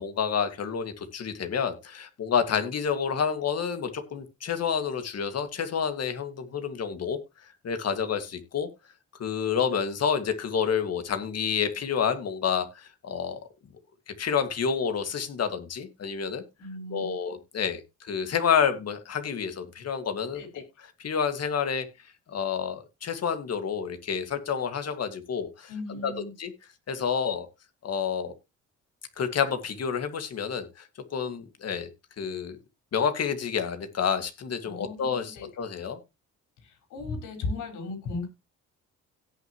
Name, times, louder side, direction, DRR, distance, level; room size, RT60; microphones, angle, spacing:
voice 1, 0.0-7.2 7.6-8.7 9.2-13.4 14.1-16.4 16.9-20.6 21.0-21.9 22.3-26.1 26.4-26.5 26.9-27.5 27.8-28.3 29.2-31.9 32.2-32.6 32.9-36.0, left 7 dB, 55° left, 8 dB, 2.1 m, -29 dB
voice 2, 16.6-17.1 20.3-20.6 25.7-26.3 34.6-35.5 36.6-38.3, left 3 dB, 85° left, 3 dB, 5.0 m, -36 dB
17.0 x 6.5 x 3.1 m, 0.25 s
cardioid pair, 90°, 30 cm